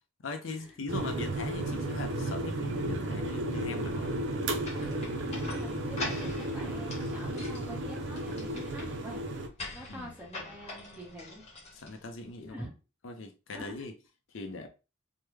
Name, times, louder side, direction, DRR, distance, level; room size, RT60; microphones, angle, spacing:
voice 1, 0.2-4.2 9.9-10.1 11.7-12.7 13.0-13.9 14.3-14.7, left 2 dB, 70° left, 0.5 m, -40 dB
sound 1, 0.9-9.5, right 1 dB, 60° right, 0.5 m, -33 dB
sound 2, 4.6-12.3, left 2 dB, 30° left, 1.0 m, -44 dB
voice 2, 5.2-9.2 9.7-11.4 12.5-12.7 13.5-13.7, equal, 10° right, 1.1 m, -45 dB
3.3 x 2.1 x 3.1 m
head